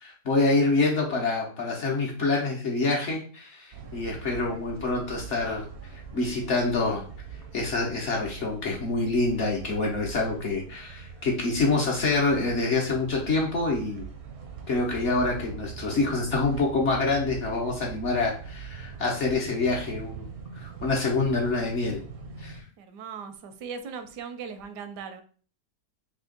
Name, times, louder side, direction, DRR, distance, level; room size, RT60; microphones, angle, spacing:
voice 1, 0.0-5.6 5.9-7.0 7.5-14.0 14.7-20.3 20.6-22.0 22.4-22.6, left 3 dB, 55° left, -1 dB, 0.9 m, -26 dB
sound 1, 3.7-22.6, right 6 dB, 65° right, 0.7 m, -42 dB
voice 2, 22.8-25.2, right 6 dB, 80° right, 9 dB, 1.2 m, -38 dB
3.4 x 2.8 x 3.8 m, 0.41 s
omnidirectional pair, 1.8 m